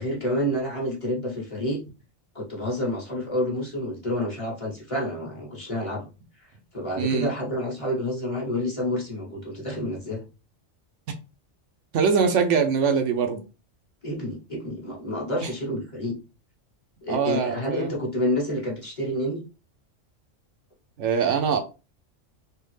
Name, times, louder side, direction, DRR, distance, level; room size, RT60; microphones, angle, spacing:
voice 1, 0.0-1.8 2.3-6.1 6.4-6.5 6.7-10.2 14.0-16.2 17.0-19.4, left 1 dB, 30° left, 1.0 m, -29 dB
voice 2, 7.0-7.3 11.9-13.4 15.4-15.5 17.1-17.9 21.0-21.6, right 6 dB, 75° right, 0.9 m, -23 dB
3.4 x 2.3 x 3.2 m
omnidirectional pair, 1.3 m